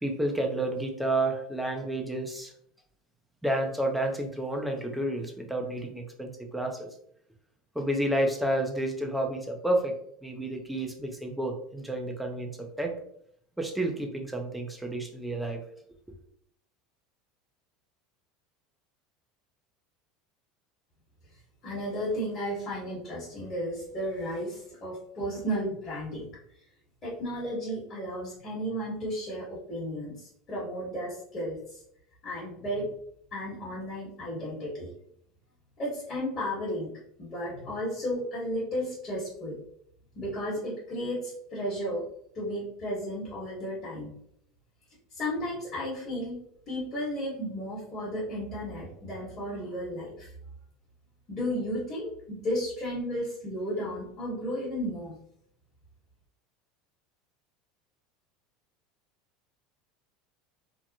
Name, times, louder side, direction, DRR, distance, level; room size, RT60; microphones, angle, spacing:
voice 1, 0.0-2.5 3.4-6.9 7.7-10.0 10.2-13.0 13.6-15.6, right 1 dB, 5° right, 2 dB, 0.6 m, -30 dB
voice 2, 21.6-26.3 27.0-31.8 32.2-32.9 33.3-34.9 35.8-36.9 37.2-39.6 40.1-42.0 42.3-44.1 45.1-46.4 46.7-50.3 51.3-55.2, equal, 40° left, -7 dB, 1.3 m, -33 dB
2.8 x 2.1 x 2.7 m, 0.68 s
hypercardioid pair, 80°, 0 cm